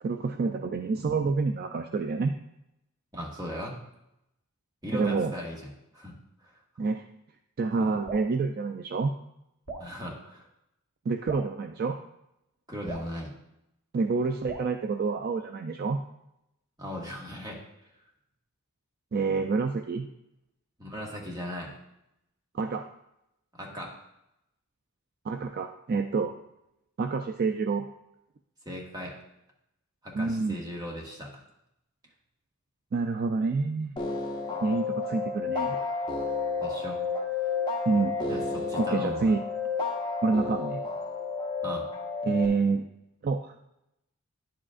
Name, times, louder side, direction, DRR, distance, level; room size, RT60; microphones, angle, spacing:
voice 1, 0.0-2.3 4.9-5.3 6.8-7.0 7.6-9.1 11.1-12.0 13.9-16.0 19.1-20.1 22.5-22.8 25.3-26.3 27.0-27.9 30.1-30.6 32.9-33.9 34.6-35.8 37.9-38.2 38.8-39.4 40.2-40.8 42.2-42.9 43.2-43.5, right 4 dB, 40° right, 6 dB, 0.3 m, -28 dB
voice 2, 3.1-3.8 4.8-5.6 5.9-6.1 6.4-6.5 7.8-7.9 9.8-10.4 12.7-13.3 16.8-17.6 20.8-21.8 23.5-23.9 28.6-29.1 30.0-31.3 36.6-37.0 38.3-39.3 41.6-41.9, equal, 15° right, -2 dB, 1.4 m, -37 dB
Drip, 8.0-8.3 9.7-9.9 11.3-11.5 12.9-13.1 14.5-14.7, right 3 dB, 80° right, 1.2 m, -39 dB
sound 1, 34.0-42.5, left 4 dB, 20° left, 0.9 m, -31 dB
10.0 x 7.5 x 2.4 m, 0.85 s
head